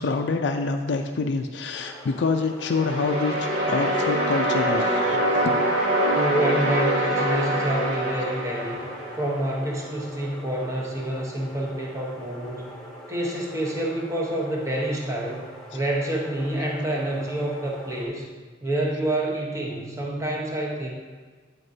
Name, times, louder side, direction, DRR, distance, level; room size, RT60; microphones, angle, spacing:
voice 1, 0.0-6.0, left 4 dB, 75° left, 5 dB, 0.4 m, -27 dB
sound 1, 1.7-18.1, equal, 5° left, 1.4 m, -43 dB
sound 2, 2.6-9.6, right 1 dB, 75° right, 1.9 m, -24 dB
voice 2, 6.1-8.9 9.2-12.7 13.1-15.4 15.7-18.3 18.6-20.9, right 1 dB, 15° right, -2 dB, 1.0 m, -27 dB
11.0 x 4.7 x 2.7 m, 1.5 s
head